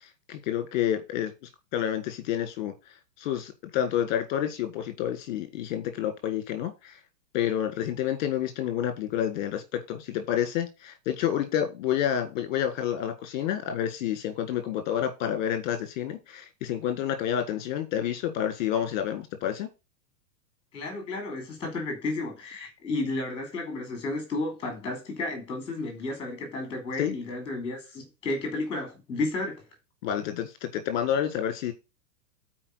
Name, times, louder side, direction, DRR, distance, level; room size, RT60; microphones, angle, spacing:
voice 1, 0.3-1.3 1.7-2.7 3.2-7.0 7.3-19.7 27.0-27.1 30.0-31.7, left 10 dB, 30° left, 1.6 m, -29 dB
voice 2, 20.7-29.6, left 2 dB, 10° left, 2.4 m, -32 dB
8.9 x 4.6 x 6.2 m
hypercardioid pair, 175°, 49 cm